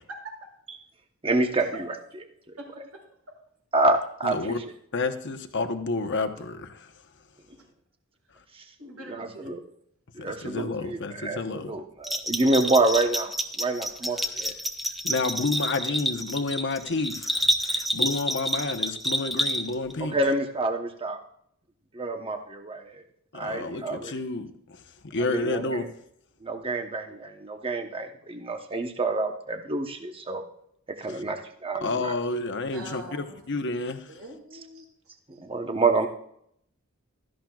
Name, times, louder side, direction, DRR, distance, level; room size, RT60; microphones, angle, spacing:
voice 1, 0.1-0.5 1.6-1.7 2.6-3.0 7.5-7.6 8.8-9.6 14.0-14.5 14.8-14.9 32.7-33.7 34.1-35.1, right 2 dB, 90° right, -1 dB, 6.2 m, -44 dB
voice 2, 1.2-1.7 3.7-4.6 8.5-8.6 9.1-9.6 10.1-11.4 11.7-14.5 20.1-21.2 22.0-23.0 23.3-24.1 25.3-25.9 26.4-30.4 31.0-32.1 35.4-36.1, right 2 dB, 25° right, 5 dB, 1.0 m, -27 dB
voice 3, 4.2-4.6 4.9-6.9 10.2-11.7 15.0-20.2 23.3-25.9 31.8-34.1, left 3 dB, 55° left, 7 dB, 1.1 m, -30 dB
Bell, 12.0-19.9, equal, ahead, 1.0 m, -28 dB
16.5 x 13.5 x 2.4 m, 0.70 s
head